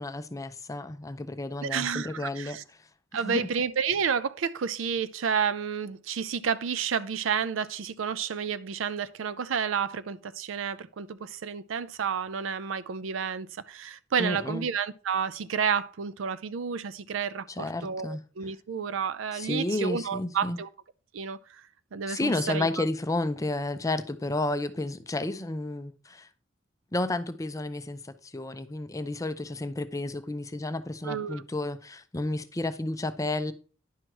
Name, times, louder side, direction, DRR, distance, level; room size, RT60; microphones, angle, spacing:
voice 1, 0.0-2.6 3.1-3.4 14.2-14.7 17.5-18.2 19.3-20.6 22.1-26.3 26.9-33.5, left 2 dB, 15° left, 0.5 m, -31 dB
voice 2, 1.6-2.6 3.1-17.5 17.8-20.7 21.1-21.4 21.9-22.7 31.0-31.4, right 7 dB, 70° right, 0.4 m, -30 dB
10.0 x 6.1 x 3.0 m
head